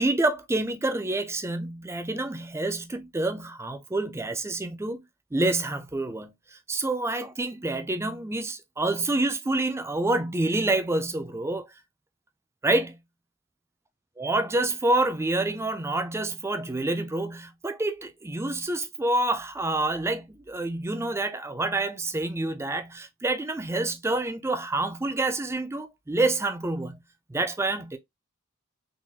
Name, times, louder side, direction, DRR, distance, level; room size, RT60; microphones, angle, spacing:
voice 1, 0.0-5.0 5.3-6.3 6.7-11.7 12.6-13.0 14.2-27.0 27.3-28.0, right 2 dB, 10° right, 0.4 m, -27 dB
3.8 x 3.0 x 2.3 m
head